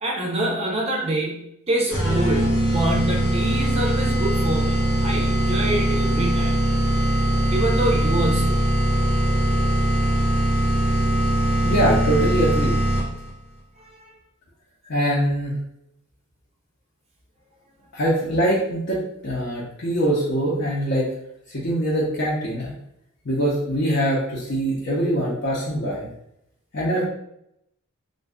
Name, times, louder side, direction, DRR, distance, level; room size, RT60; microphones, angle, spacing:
voice 1, 0.0-6.6 7.5-8.7 13.8-14.1, right 1 dB, 30° right, 0 dB, 0.5 m, -26 dB
sound 1, 1.9-13.3, right 1 dB, 75° left, 1.1 m, -21 dB
voice 2, 11.6-12.8 14.9-15.5 17.9-21.1 21.5-22.7 23.2-26.1 26.7-27.1, right 1 dB, 50° left, -6 dB, 0.7 m, -23 dB
2.5 x 2.3 x 3.5 m, 0.77 s
head